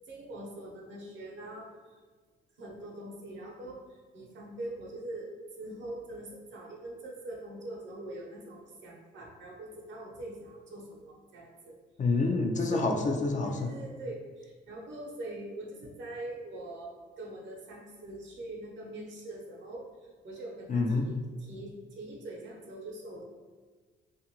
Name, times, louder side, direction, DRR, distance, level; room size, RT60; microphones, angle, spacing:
voice 1, 0.0-2.0 2.6-11.8 12.7-13.0 13.4-23.2, right 1 dB, 70° right, -1 dB, 0.7 m, -43 dB
voice 2, 12.0-13.7 20.7-21.1, left 3 dB, 40° left, 3 dB, 0.4 m, -27 dB
2.6 x 2.4 x 2.8 m, 1.4 s
cardioid pair, 90°, 20 cm